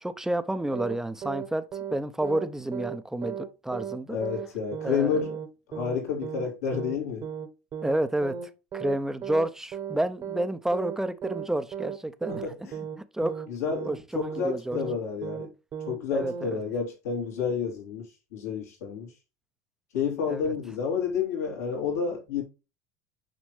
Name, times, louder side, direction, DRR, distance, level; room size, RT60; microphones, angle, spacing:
voice 1, 0.0-1.6 1.9-4.2 4.8-5.2 7.8-8.4 8.7-12.5 13.1-13.4 13.8-14.8 16.1-16.6 20.3-20.4, right 1 dB, 5° right, 0.6 m, -30 dB
sound 1, 0.7-1.0 1.2-1.5 1.7-2.5 2.7-3.0 3.2-3.5 3.7-4.0 4.2-4.5 4.7-5.0 5.2-5.5 5.7-6.0 6.2-6.5 6.7-7.0 7.2-7.5 7.7-8.0 8.2-8.5 8.7-9.0 9.2-9.5 9.7-10.0 10.2-10.5 10.7-11.0 11.2-11.5 11.7-12.0 12.2-12.5 12.7-13.0 13.2-13.5 13.7-14.0 14.2-14.5 14.7-15.0 15.2-15.5 15.7-16.0 16.2-16.5, right 8 dB, 40° right, 1.1 m, -35 dB
voice 2, 4.1-5.4 5.7-7.3 12.3-12.8 13.5-15.5 15.9-19.1 19.9-22.4, left 6 dB, 80° left, 2.9 m, -30 dB
6.4 x 5.2 x 3.2 m
hypercardioid pair, 90°, 8 cm